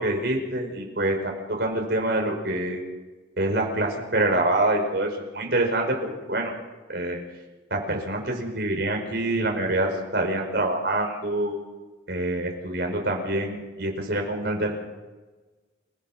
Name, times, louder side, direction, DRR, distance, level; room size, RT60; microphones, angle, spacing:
voice 1, 0.0-2.8 3.4-6.5 6.9-7.2 7.7-11.6 12.1-14.7, right 1 dB, 60° right, 1 dB, 5.2 m, -26 dB
29.0 x 17.0 x 6.1 m, 1.2 s
head